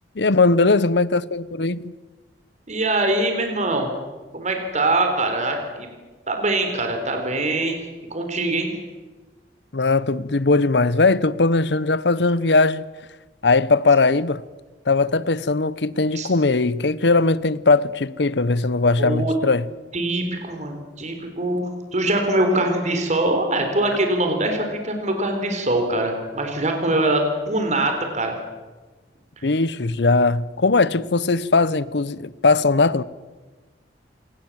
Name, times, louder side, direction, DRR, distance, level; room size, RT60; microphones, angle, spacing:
voice 1, 0.1-1.9 9.7-12.9 13.4-14.4 14.9-19.7 29.4-33.0, left 3 dB, 75° left, 0.9 m, -19 dB
voice 2, 2.7-3.9 4.3-5.9 6.3-7.8 8.1-8.7 16.1-16.3 19.0-19.3 19.9-28.4, right 2 dB, 45° right, 4.0 m, -23 dB
27.5 x 20.0 x 7.5 m
head